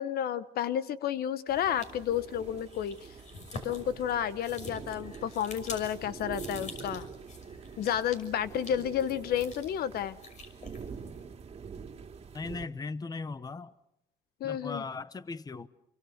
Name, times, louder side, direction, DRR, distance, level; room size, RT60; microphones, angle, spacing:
voice 1, 0.0-3.0 3.6-7.1 7.8-10.2 14.4-14.8, left 10 dB, 65° left, 1.0 m, -31 dB
sound 1, 1.5-12.7, right 6 dB, 35° right, 2.5 m, -45 dB
sound 2, 1.6-11.3, left 3 dB, 45° left, 6.0 m, -48 dB
voice 2, 12.3-13.7 14.4-15.7, left 4 dB, 20° left, 1.0 m, -38 dB
28.5 x 24.0 x 6.5 m
cardioid pair, 110°, 17 cm